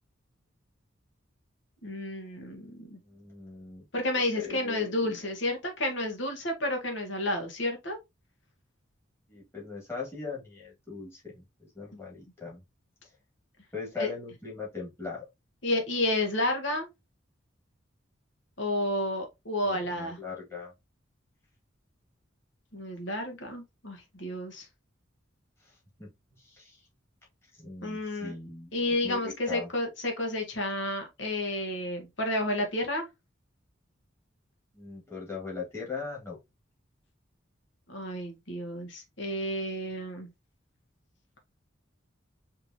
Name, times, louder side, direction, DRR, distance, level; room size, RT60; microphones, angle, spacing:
voice 1, 1.8-3.0 3.9-8.0 14.0-14.1 15.6-16.9 18.6-20.2 22.7-24.7 27.8-28.3 28.7-33.1 37.9-40.3, left 1 dB, 65° left, 1.4 m, -31 dB
voice 2, 3.0-3.8 4.2-5.3 9.3-11.4 11.7-12.6 13.7-15.2 19.6-20.7 25.6-25.7 26.0-26.1 26.4-26.9 27.6-29.7 34.7-36.4, left 4 dB, 15° left, 2.0 m, -40 dB
5.1 x 3.0 x 2.8 m
head